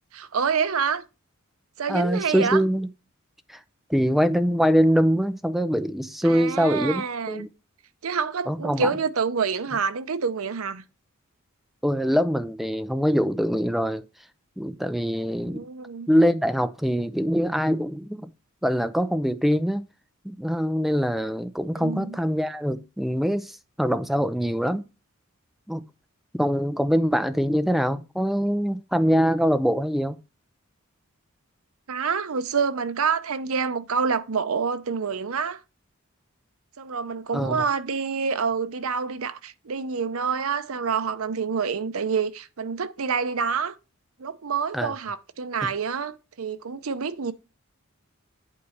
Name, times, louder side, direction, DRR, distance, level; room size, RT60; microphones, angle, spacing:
voice 1, 0.1-1.0 1.8-2.6 6.2-7.5 8.0-10.8 15.4-16.1 21.8-22.2 31.9-35.6 36.8-43.8 44.2-47.3, right 5 dB, 75° right, 0.6 m, -27 dB
voice 2, 1.9-2.9 3.5-3.6 3.9-7.5 8.5-9.0 11.8-14.0 14.6-15.7 16.1-18.3 18.6-19.9 20.2-24.9 25.7-25.9 26.3-30.2 37.3-37.6 44.7-44.9 45.6-45.7, equal, ahead, 0.4 m, -23 dB
8.5 x 3.2 x 6.3 m
head